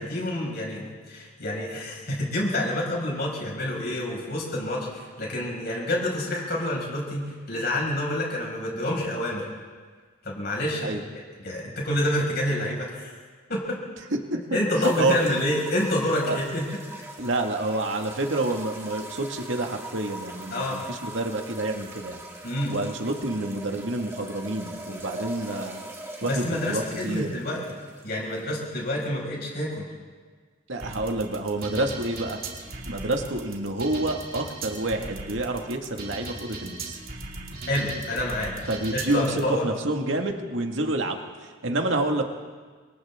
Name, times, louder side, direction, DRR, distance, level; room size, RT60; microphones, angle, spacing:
voice 1, 0.0-9.5 10.2-10.9 11.4-13.1 13.5-13.8 14.5-16.6 20.5-20.8 22.4-22.7 26.2-27.6 28.0-29.9 37.7-38.5 38.9-39.7, left 1 dB, 50° left, -3 dB, 6.0 m, -28 dB
sound 1, 14.8-29.1, right 1 dB, 15° right, 2.4 m, -41 dB
voice 2, 14.8-15.2 16.3-16.4 17.2-22.2 22.7-25.8 26.2-27.3 30.7-32.4 32.9-37.0 38.7-42.2, right 2 dB, 65° right, 3 dB, 2.1 m, -28 dB
sound 2, 30.8-39.4, right 3 dB, 45° right, 2.7 m, -38 dB
29.0 x 26.5 x 3.8 m, 1.5 s
head